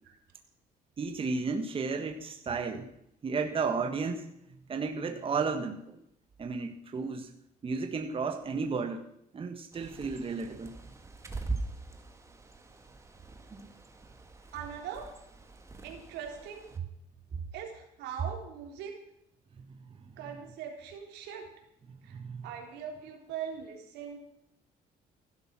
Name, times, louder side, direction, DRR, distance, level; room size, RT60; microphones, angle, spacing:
voice 1, 1.0-2.9 3.2-4.3 4.7-6.0 6.4-7.3 7.6-9.0 9.3-10.7 13.5-13.7 19.6-19.8 22.1-22.5, right 4 dB, 35° right, 4 dB, 1.5 m, -33 dB
Bird, 9.7-16.8, right 3 dB, 15° right, 2.1 m, -42 dB
voice 2, 14.5-15.1 15.8-16.7 17.5-19.0 20.2-21.5 22.0-22.2 22.4-24.2, right 8 dB, 85° right, 3 dB, 3.7 m, -41 dB
16.0 x 12.0 x 6.0 m, 0.79 s
cardioid pair, 110°, 17 cm